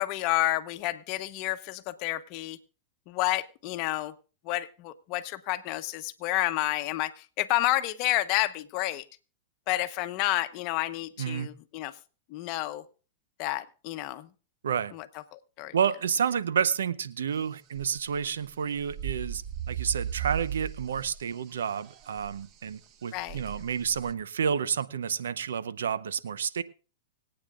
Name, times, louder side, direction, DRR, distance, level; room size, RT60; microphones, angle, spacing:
voice 1, 0.0-2.6 3.1-4.1 4.4-9.0 9.7-11.9 12.3-12.8 13.4-14.3 14.9-15.1 15.3-15.7 23.1-23.4, left 16 dB, 50° left, 11 dB, 1.0 m, -30 dB
voice 2, 11.2-11.5 14.6-14.9 15.7-26.6, right 7 dB, 90° right, 16 dB, 0.7 m, -30 dB
sound 1, 17.8-18.5 18.8-21.2 21.5-22.4 23.3-24.1, right 9 dB, 40° right, 1.0 m, -36 dB
25.0 x 8.8 x 2.5 m, 0.36 s
hypercardioid pair, 120°, 0 cm